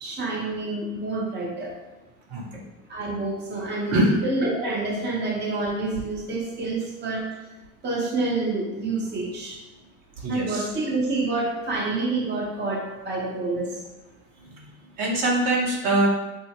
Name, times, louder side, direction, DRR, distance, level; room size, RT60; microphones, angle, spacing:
voice 1, 0.0-1.7 2.9-3.9 4.2-7.2 7.8-9.5 10.3-13.7, right 2 dB, 25° right, -3 dB, 0.9 m, -28 dB
voice 2, 10.2-10.7 15.0-16.1, right 1 dB, 55° right, -3 dB, 1.3 m, -22 dB
5.4 x 2.1 x 3.1 m, 1.1 s
hypercardioid pair, 75°, 41 cm